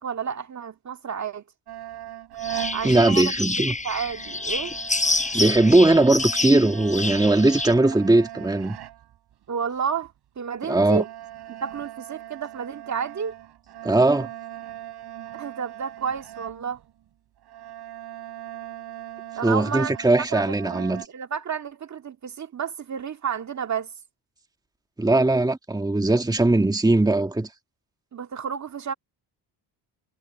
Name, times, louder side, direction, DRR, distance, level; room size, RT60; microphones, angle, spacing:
voice 1, 0.0-1.4 2.7-3.3 3.7-4.7 9.5-11.1 11.5-13.4 15.3-16.8 19.3-19.9 20.3-23.9 28.1-28.9, right 7 dB, 40° right, 2.0 m, -31 dB
sound 1, 1.7-3.7 4.0-9.3 10.0-10.1 10.6-17.1 17.4-21.1, right 13 dB, 65° right, 4.4 m, -39 dB
sound 2, 2.4-7.7, left 2 dB, 15° left, 5.8 m, -28 dB
voice 2, 2.8-3.7 5.3-8.8 10.7-11.0 13.8-14.3 19.4-21.0 25.0-27.5, right 2 dB, 10° right, 1.8 m, -19 dB
cardioid pair, 90°, 42 cm